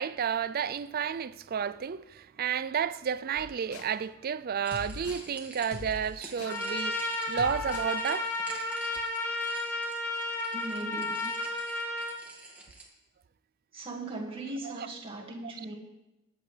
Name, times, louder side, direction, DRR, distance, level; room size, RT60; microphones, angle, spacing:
voice 1, 0.0-8.3 14.6-14.9 15.4-15.7, right 7 dB, 45° right, 0.4 m, -32 dB
sound 1, 3.4-4.0 4.7-5.3 5.7-6.6 7.4-8.0, left 4 dB, 70° left, 0.6 m, -43 dB
sound 2, 4.6-12.8, right 2 dB, 5° right, 2.0 m, -49 dB
Trumpet, 6.5-12.2, left 2 dB, 10° left, 2.7 m, -33 dB
voice 2, 10.5-11.2 13.7-15.7, right 2 dB, 25° right, 1.9 m, -38 dB
22.0 x 8.2 x 3.3 m
head